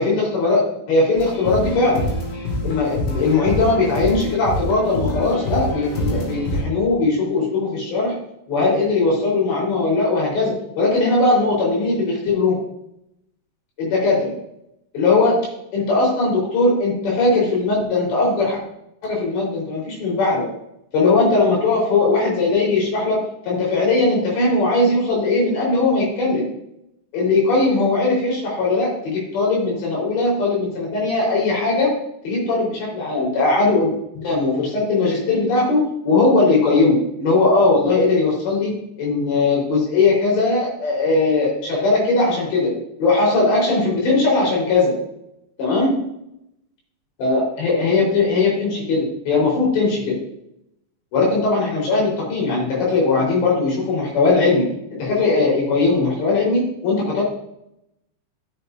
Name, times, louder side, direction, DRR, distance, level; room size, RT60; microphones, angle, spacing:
voice 1, 0.0-2.1 2.6-8.1 8.5-12.6 13.8-14.3 14.9-15.4 15.7-18.6 19.0-20.5 20.9-26.5 27.1-31.9 32.3-33.9 34.2-42.7 43.0-44.9 45.6-45.9 47.2-50.2 51.1-54.7 55.0-57.2, left 3 dB, 80° left, -4 dB, 6.8 m, -19 dB
sound 1, 1.2-6.6, left 1 dB, 65° left, 3.9 m, -26 dB
13.0 x 8.1 x 2.8 m, 0.79 s
omnidirectional pair, 4.9 m